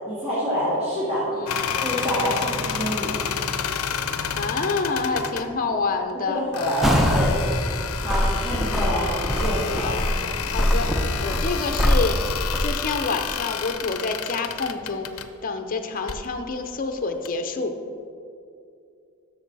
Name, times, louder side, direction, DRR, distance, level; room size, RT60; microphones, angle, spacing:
voice 1, 0.1-1.2 1.7-3.1 5.4-5.5 6.1-7.4 8.0-9.1 9.4-9.9, equal, 30° right, -9 dB, 2.1 m, -27 dB
voice 2, 1.3-1.6 4.3-6.4 9.8-10.1 10.5-10.9 11.2-12.2 12.6-15.1 15.4-17.7, left 4 dB, 40° left, 6 dB, 0.6 m, -27 dB
sound 1, 1.5-5.5 6.5-15.3 16.0-16.3 17.3-17.4, left 7 dB, 85° left, 0.6 m, -30 dB
sound 2, 6.8-7.4 7.8-12.7, equal, ahead, 0.8 m, -23 dB
12.0 x 6.5 x 4.0 m, 2.5 s
head